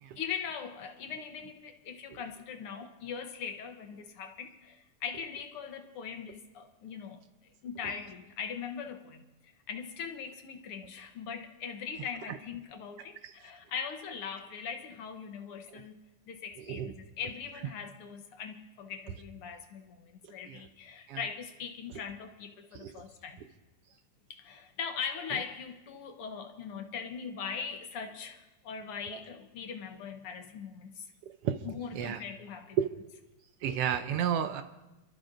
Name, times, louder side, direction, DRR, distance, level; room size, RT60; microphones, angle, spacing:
voice 1, 0.1-7.2 7.6-23.4 24.3-31.1 31.6-32.8, left 6 dB, 65° left, 5 dB, 1.5 m, -41 dB
voice 2, 33.6-34.6, right 9 dB, 75° right, 8 dB, 1.4 m, -32 dB
29.0 x 13.0 x 2.6 m, 1.0 s
omnidirectional pair, 3.3 m